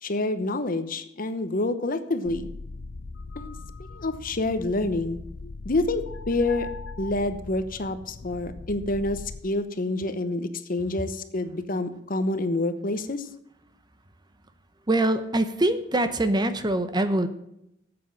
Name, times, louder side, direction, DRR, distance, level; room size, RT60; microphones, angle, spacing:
voice 1, 0.0-2.5 3.4-3.5 3.9-5.2 5.6-6.7 7.0-13.3, left 2 dB, 50° left, 11 dB, 0.9 m, -27 dB
sound 1, 2.2-9.4, left 3 dB, 80° left, 0.6 m, -40 dB
voice 2, 14.9-17.3, right 1 dB, 25° right, 10 dB, 0.8 m, -23 dB
9.1 x 7.9 x 7.4 m, 0.80 s
head